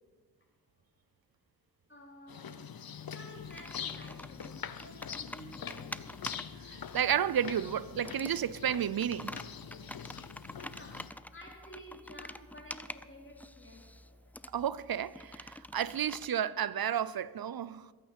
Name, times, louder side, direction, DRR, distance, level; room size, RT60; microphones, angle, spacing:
voice 1, 1.9-2.7 3.1-6.0 7.6-8.2 10.4-14.4, equal, 30° left, 3.7 m, -53 dB
sound 1, 2.3-11.1, left 7 dB, 65° left, 0.7 m, -44 dB
Computer keyboard, 3.4-16.3, left 1 dB, 5° left, 0.4 m, -48 dB
voice 2, 6.6-9.4 14.5-17.9, right 9 dB, 65° right, 0.6 m, -32 dB
22.0 x 8.8 x 5.2 m
wide cardioid pair, 60°, 39 cm